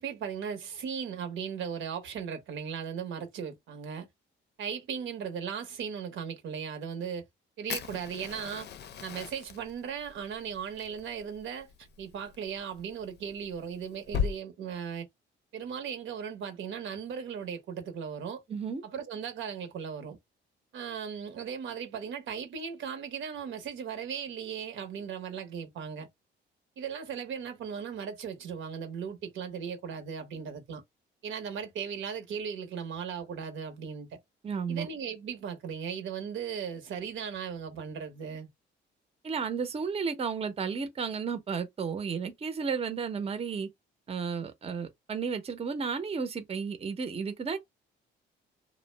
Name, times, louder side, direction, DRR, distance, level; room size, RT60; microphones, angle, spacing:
voice 1, 0.0-4.1 4.6-7.2 7.6-8.7 9.0-11.7 12.0-15.1 15.5-18.4 18.8-20.2 20.7-26.1 26.8-30.8 31.2-34.1 34.7-38.5, right 7 dB, 75° right, 0.8 m, -37 dB
Fire, 7.7-14.3, left 7 dB, 60° left, 0.5 m, -39 dB
voice 2, 18.5-18.8 34.4-34.9 39.2-43.7 44.1-47.6, right 5 dB, 30° right, 0.6 m, -33 dB
2.5 x 2.0 x 3.2 m
cardioid pair, 90°, 20 cm